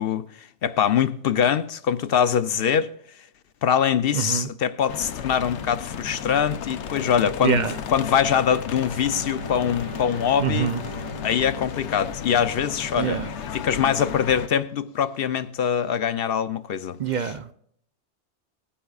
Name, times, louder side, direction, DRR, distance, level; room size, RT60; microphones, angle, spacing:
voice 1, 0.0-2.9 3.6-10.7 11.2-13.2 13.5-17.3, left 8 dB, 65° left, 0.7 m, -23 dB
voice 2, 4.1-4.5 7.4-7.8 10.4-10.8 13.0-13.3 17.0-17.5, right 8 dB, 50° right, 0.6 m, -25 dB
sound 1, 4.9-14.5, left 8 dB, 90° left, 1.0 m, -34 dB
Bowed string instrument, 8.5-13.0, right 1 dB, 25° right, 0.9 m, -41 dB
19.5 x 10.0 x 2.4 m
omnidirectional pair, 1.1 m